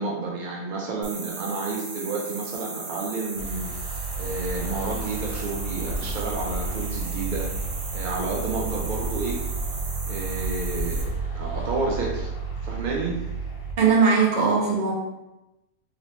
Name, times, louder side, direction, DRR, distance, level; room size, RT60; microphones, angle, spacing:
voice 1, 0.0-3.7 4.2-7.5 7.9-9.4 10.0-12.3 12.6-13.2, right 3 dB, 70° right, -2 dB, 0.4 m, -30 dB
sound 1, 1.0-11.0, right 3 dB, 90° right, 1.2 m, -37 dB
sound 2, 3.4-13.8, right 3 dB, 80° left, 1.1 m, -31 dB
voice 2, 13.8-14.9, right 5 dB, 40° right, -4 dB, 0.8 m, -19 dB
3.1 x 3.0 x 2.9 m, 0.97 s
omnidirectional pair, 1.4 m